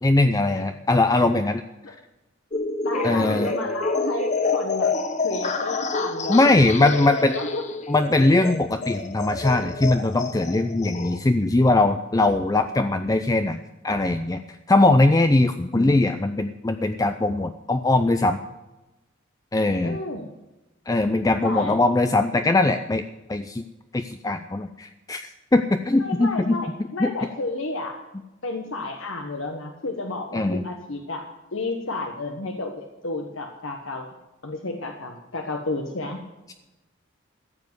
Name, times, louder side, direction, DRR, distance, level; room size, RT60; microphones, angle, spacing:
voice 1, 0.0-1.6 1.9-2.0 3.0-3.5 6.3-7.4 7.9-14.4 14.7-18.4 19.5-20.0 20.9-23.6 23.9-25.2 25.5-26.6 27.0-27.1 30.3-30.6, left 2 dB, 15° left, 8 dB, 0.5 m, -21 dB
sound 1, 2.5-11.2, left 3 dB, 35° left, 1.0 m, -28 dB
voice 2, 2.8-4.9 5.2-7.6 15.7-16.0 19.8-20.3 21.4-21.8 26.0-28.0 28.4-31.2 31.5-34.1 34.4-36.2, left 2 dB, 80° left, 3 dB, 1.3 m, -31 dB
14.5 x 7.5 x 8.1 m, 1.0 s
head